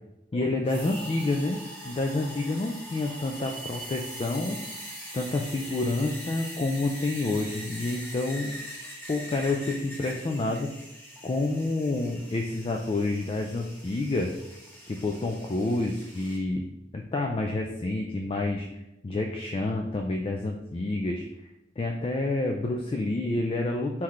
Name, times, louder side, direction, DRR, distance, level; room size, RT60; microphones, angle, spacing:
voice 1, 0.3-4.6 5.1-8.5 9.1-10.7 11.2-14.3 14.9-16.6 16.9-18.7 19.0-21.3 21.8-24.0, left 2 dB, 30° left, 2 dB, 0.3 m, -28 dB
sound 1, 0.6-16.4, equal, 10° left, 1.5 m, -42 dB
4.2 x 3.9 x 3.1 m, 0.91 s
head